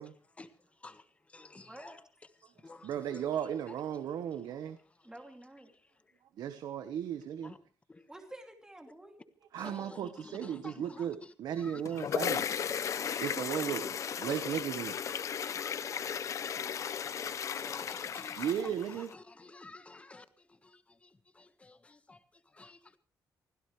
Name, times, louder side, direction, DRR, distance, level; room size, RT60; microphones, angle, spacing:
voice 1, 0.0-5.1 5.7-6.2 7.4-7.6 7.9-8.1 9.6-13.8 14.2-14.7 15.1-16.0 16.5-16.8 17.2-23.0, left 3 dB, 20° left, 1.5 m, -53 dB
voice 2, 1.7-2.0 5.0-5.7 8.1-9.2 9.7-9.9, right 1 dB, 10° right, 2.7 m, -50 dB
voice 3, 2.8-4.8 6.4-7.5 9.5-12.5 13.2-14.9 16.5-16.6 18.4-19.1, right 9 dB, 80° right, 1.2 m, -35 dB
sound 1, 11.6-19.1, left 8 dB, 50° left, 0.8 m, -35 dB
25.0 x 16.0 x 3.3 m
cardioid pair, 135°, 7 cm